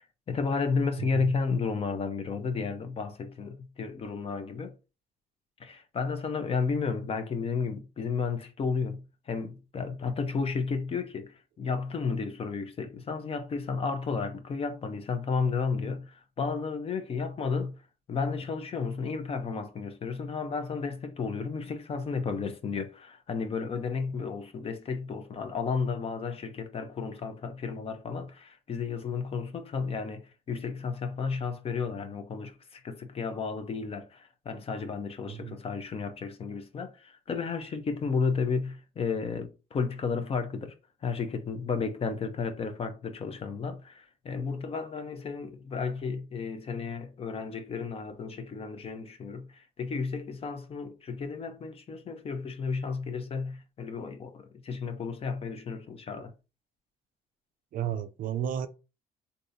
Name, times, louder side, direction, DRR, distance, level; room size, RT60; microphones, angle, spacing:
voice 1, 0.0-4.8 5.6-17.8 18.1-40.7 41.0-56.3, left 5 dB, 35° left, 0.6 m, -33 dB
voice 2, 1.0-1.3 35.3-35.6 57.7-58.7, right 9 dB, 55° right, 0.5 m, -33 dB
3.6 x 2.7 x 2.6 m
cardioid pair, 110°, 17 cm